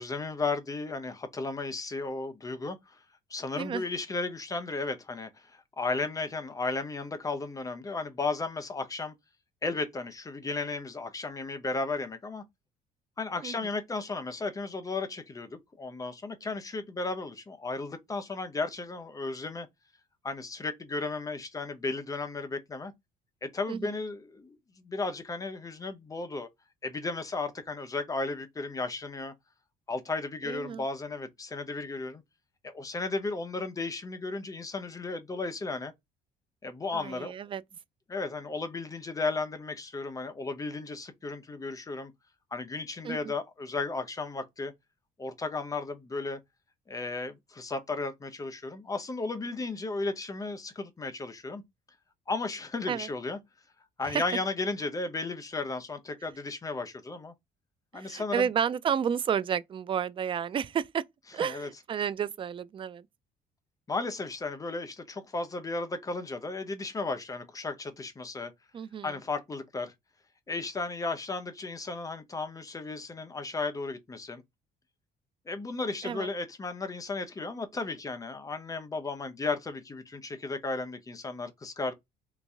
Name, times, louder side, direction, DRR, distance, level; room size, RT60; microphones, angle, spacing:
voice 1, 0.0-3.0 3.3-9.1 9.6-12.4 13.2-19.7 20.2-22.9 23.4-26.5 26.8-29.3 29.9-32.2 32.6-35.9 36.6-37.3 38.1-42.1 42.5-44.7 45.2-46.4 46.9-51.6 52.3-53.4 54.0-57.3 57.9-58.5 61.4-61.7 63.9-68.5 69.0-69.9 70.5-74.4 75.5-81.9, left 3 dB, 20° left, 0.7 m, -34 dB
voice 2, 30.4-30.8 36.9-37.6 43.0-43.3 52.9-53.1 54.0-54.2 57.9-61.0 61.3-63.1 68.7-69.1 76.0-76.3, right 8 dB, 30° right, 0.3 m, -31 dB
3.0 x 2.6 x 3.5 m
cardioid pair, 110°, 17 cm